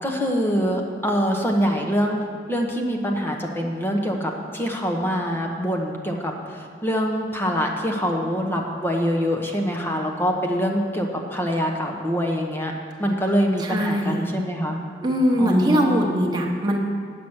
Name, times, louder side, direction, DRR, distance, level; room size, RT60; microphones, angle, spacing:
voice 1, 0.0-2.2 2.5-12.7 13.0-14.8 15.4-16.1, equal, 10° left, 1 dB, 1.1 m, -24 dB
voice 2, 13.6-14.3 15.0-16.8, equal, 25° right, 0 dB, 1.2 m, -21 dB
10.0 x 6.0 x 8.0 m, 2.2 s
head